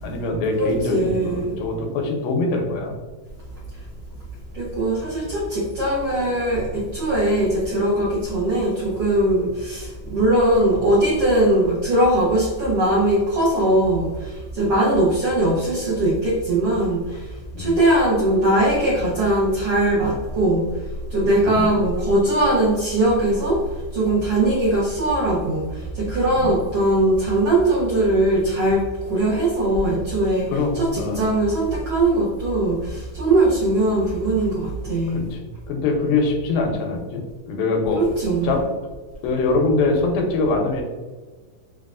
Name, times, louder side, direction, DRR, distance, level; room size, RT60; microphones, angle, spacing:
voice 1, 0.0-2.9 17.5-17.7 21.4-21.6 26.4-26.5 30.5-31.2 35.1-35.4 35.7-37.2 37.5-38.0 38.4-38.6 39.2-40.8, left 3 dB, 90° left, 2 dB, 2.5 m, -23 dB
voice 2, 0.6-1.6 4.5-20.7 21.1-35.3 37.9-38.5, right 1 dB, 90° right, -6 dB, 1.3 m, -20 dB
6.6 x 2.3 x 2.4 m, 1.3 s
omnidirectional pair, 4.0 m